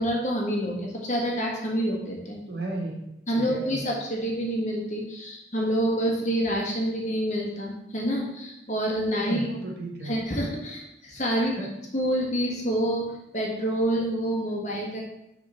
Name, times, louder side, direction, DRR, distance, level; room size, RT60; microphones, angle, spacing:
voice 1, 0.0-2.4 3.3-9.5 10.0-11.6 11.9-15.0, equal, 40° left, -2 dB, 1.6 m, -27 dB
voice 2, 2.5-3.0 3.3-3.8 9.2-10.1 10.4-10.6 11.6-11.7, right 2 dB, 65° right, -1 dB, 1.6 m, -34 dB
6.4 x 3.7 x 5.7 m, 0.86 s
head